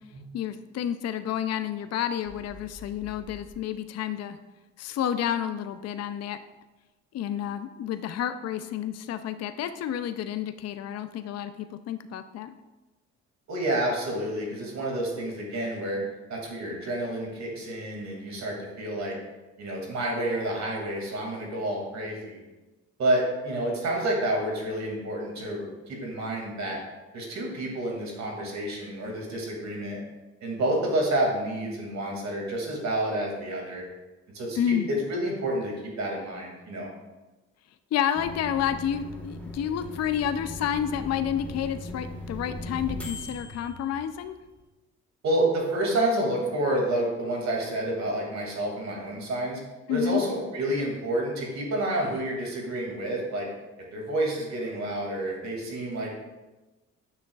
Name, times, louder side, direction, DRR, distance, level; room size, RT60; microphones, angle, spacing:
voice 1, 0.3-4.4 4.8-6.4 7.1-12.5 34.6-34.9 37.9-44.4 49.9-50.2, left 9 dB, 55° left, 10 dB, 0.5 m, -30 dB
sound 1, 2.3-3.5, left 2 dB, 80° left, 1.0 m, -47 dB
voice 2, 13.5-16.0 16.3-19.2 19.6-22.4 23.0-26.8 27.1-30.0 30.4-33.8 34.3-36.9 45.2-49.6 49.9-53.5 53.9-56.1, right 1 dB, 65° right, -1 dB, 2.3 m, -29 dB
sound 2, 38.1-44.6, left 2 dB, 5° left, 1.2 m, -39 dB
9.7 x 6.3 x 2.3 m, 1.1 s
cardioid pair, 90°, 30 cm